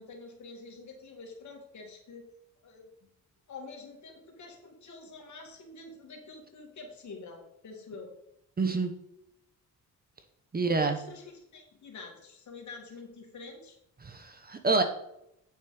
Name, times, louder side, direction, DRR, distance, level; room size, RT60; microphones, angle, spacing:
voice 1, 0.0-2.3 2.6-2.9 3.5-8.1 10.8-13.8, left 3 dB, 65° left, 1 dB, 2.6 m, -47 dB
voice 2, 8.6-8.9 10.5-11.0 14.0-14.8, right 3 dB, 30° right, 7 dB, 1.1 m, -27 dB
8.8 x 7.4 x 5.1 m, 0.79 s
cardioid pair, 115°, 31 cm